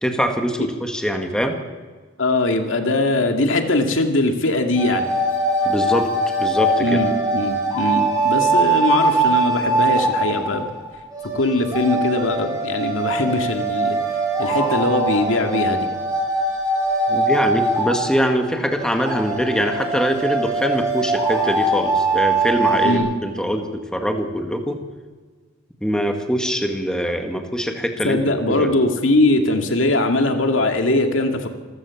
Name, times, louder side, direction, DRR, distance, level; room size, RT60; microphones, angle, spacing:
voice 1, 0.0-1.6 5.7-6.1 6.4-7.0 17.1-24.8 25.8-28.2 28.5-28.7, equal, 5° left, 4 dB, 1.9 m, -23 dB
voice 2, 2.2-5.1 6.8-10.7 11.3-14.0 14.4-15.9 22.8-23.1 28.0-31.5, left 2 dB, 80° left, 5 dB, 2.3 m, -21 dB
sound 1, 4.8-23.0, right 2 dB, 20° right, 7.5 m, -22 dB
26.5 x 15.0 x 7.2 m, 1.4 s
head